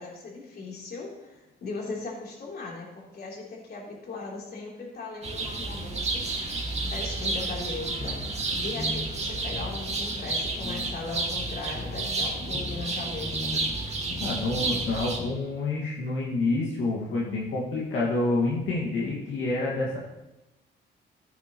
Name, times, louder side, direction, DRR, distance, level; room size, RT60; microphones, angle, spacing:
voice 1, 0.0-6.3 6.8-8.2 8.5-13.5, left 3 dB, 50° left, -3 dB, 3.6 m, -38 dB
sound 1, 5.2-15.2, right 2 dB, 35° right, 2.1 m, -31 dB
sound 2, 8.0-8.5 8.8-9.2 9.5-9.8 10.3-10.4 10.6-13.0 13.3-13.8 14.1-14.5 14.8-15.4, left 2 dB, 25° left, 0.9 m, -38 dB
voice 2, 14.2-20.0, left 2 dB, 80° left, -5 dB, 2.1 m, -28 dB
14.5 x 9.4 x 3.1 m, 0.99 s
cardioid pair, 90°, 20 cm